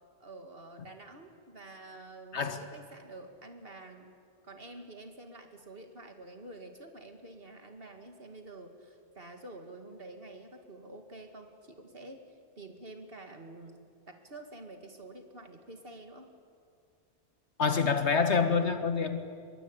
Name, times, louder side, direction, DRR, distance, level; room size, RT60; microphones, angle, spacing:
voice 1, 0.2-4.1 4.4-12.2 12.6-16.3, right 2 dB, 50° right, 5 dB, 2.5 m, -48 dB
voice 2, 17.6-19.2, left 5 dB, 70° left, 8 dB, 1.9 m, -26 dB
24.0 x 22.5 x 10.0 m, 2.3 s
omnidirectional pair, 1.2 m